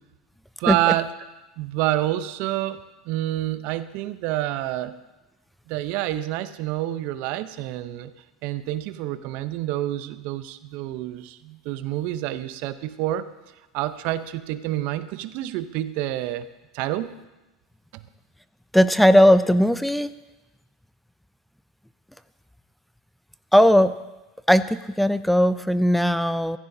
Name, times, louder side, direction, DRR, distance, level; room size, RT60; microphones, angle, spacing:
voice 1, 0.6-1.1 1.6-2.8 3.1-4.9 5.7-8.1 8.4-13.3 13.7-16.5 16.7-17.1 17.9-18.0, right 14 dB, 55° right, 13 dB, 0.7 m, -28 dB
voice 2, 18.7-20.1 23.5-23.9 24.5-26.6, equal, ahead, 13 dB, 0.4 m, -18 dB
15.5 x 15.0 x 2.7 m, 1.1 s
hypercardioid pair, 90°, 3 cm